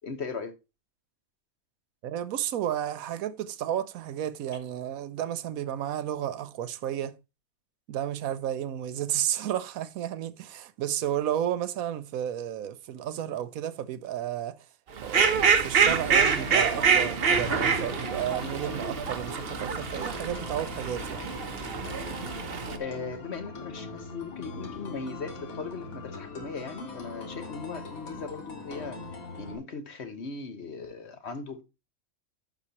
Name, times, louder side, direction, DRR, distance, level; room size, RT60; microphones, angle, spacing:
voice 1, 0.0-0.5 22.8-29.0 29.4-31.6, left 4 dB, 50° left, 1.3 m, -38 dB
voice 2, 2.0-7.2 7.9-14.7 15.0-21.2, right 11 dB, 80° right, 1.1 m, -32 dB
Fowl, 15.0-22.8, right 6 dB, 50° right, 1.0 m, -26 dB
sound 1, 15.9-29.6, left 3 dB, 80° left, 2.0 m, -41 dB
10.5 x 6.0 x 2.8 m
omnidirectional pair, 1.5 m